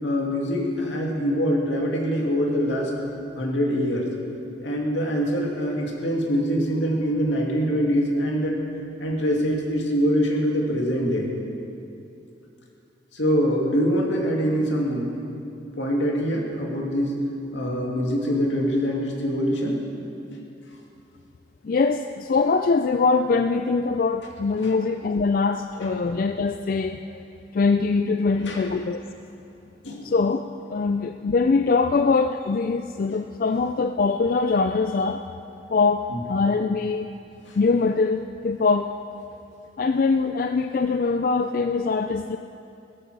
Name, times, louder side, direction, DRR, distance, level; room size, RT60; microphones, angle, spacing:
voice 1, 0.0-2.9 3.4-4.1 4.6-8.6 9.0-11.3 13.1-15.1 15.8-17.2 17.5-19.8 20.3-20.4 24.6-24.7 28.4-28.6 29.8-30.1 36.1-36.2 37.5-37.6, equal, 80° left, -1 dB, 2.4 m, -24 dB
voice 2, 21.6-27.2 27.5-29.0 30.0-30.4 30.7-35.2 35.7-37.1 37.6-38.9 39.8-42.4, left 4 dB, 50° left, 8 dB, 0.3 m, -22 dB
16.5 x 14.0 x 4.8 m, 2.7 s
head